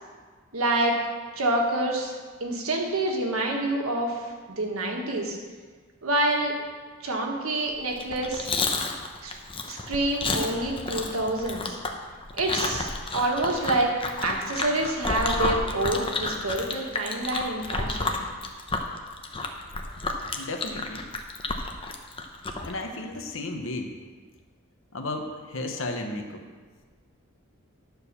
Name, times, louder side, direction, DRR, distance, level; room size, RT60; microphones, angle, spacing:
voice 1, 0.5-1.0 1.3-2.1 2.4-4.2 4.5-5.4 6.0-6.5 7.0-8.5 9.2-9.3 9.7-11.8 12.4-12.9 13.1-13.9 14.2-18.2, right 1 dB, 85° right, 1 dB, 1.6 m, -27 dB
Chewing mastication, 7.9-22.7, left 3 dB, 25° left, 0.7 m, -31 dB
voice 2, 20.4-21.1 22.6-24.0 24.9-26.4, left 2 dB, 65° left, 4 dB, 1.1 m, -34 dB
10.5 x 4.7 x 6.8 m, 1.5 s
head